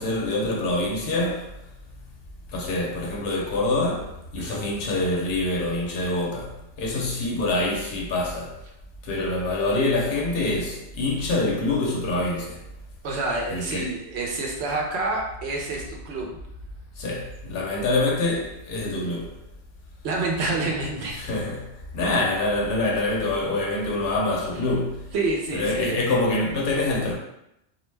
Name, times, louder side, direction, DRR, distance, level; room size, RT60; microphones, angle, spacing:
voice 1, 0.0-1.5 2.5-8.6 9.0-12.6 13.5-13.9 17.0-19.4 21.1-25.1 25.5-27.2, left 2 dB, 70° left, 0.8 m, -25 dB
voice 2, 4.4-4.7 13.0-16.4 20.0-21.2 25.1-26.1, right 2 dB, 85° right, 0.9 m, -28 dB
2.4 x 2.1 x 3.2 m
omnidirectional pair, 1.1 m